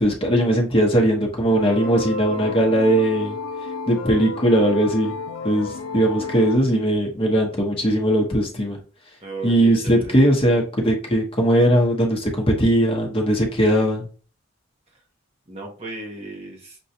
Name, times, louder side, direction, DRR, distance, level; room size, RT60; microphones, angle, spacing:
voice 1, 0.0-3.4 3.9-5.1 5.4-8.8 9.4-14.1, right 1 dB, 25° left, 0 dB, 0.9 m, -19 dB
sound 1, 1.5-6.6, left 3 dB, 75° left, 0.4 m, -31 dB
voice 2, 9.2-10.3 14.9-15.0 15.5-16.8, right 2 dB, 30° right, 0 dB, 0.9 m, -35 dB
6.0 x 2.3 x 2.7 m, 0.39 s
head